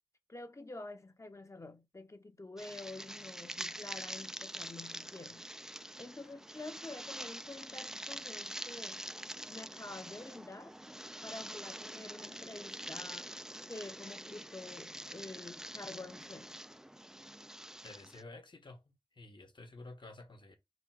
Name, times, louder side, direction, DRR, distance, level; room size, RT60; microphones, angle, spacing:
voice 1, 0.3-5.5 6.0-9.0 9.5-10.7 11.2-13.3 13.7-16.6, left 2 dB, 35° left, 0.8 m, -48 dB
sound 1, 2.6-18.2, right 1 dB, 5° right, 0.3 m, -45 dB
voice 2, 17.8-20.6, left 2 dB, 60° left, 1.2 m, -51 dB
5.0 x 2.3 x 4.7 m
wide cardioid pair, 50°, 9 cm